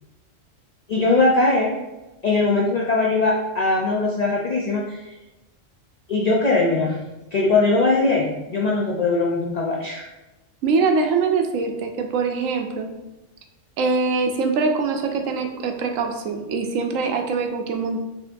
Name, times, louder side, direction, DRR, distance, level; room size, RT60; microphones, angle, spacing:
voice 1, 0.9-1.7 2.2-5.1 6.1-7.0 7.3-10.1, left 3 dB, 60° left, -2 dB, 0.4 m, -20 dB
voice 2, 10.6-12.9 13.8-18.0, right 4 dB, 85° right, 4 dB, 1.0 m, -23 dB
5.3 x 2.8 x 2.5 m, 1.0 s
omnidirectional pair, 1.3 m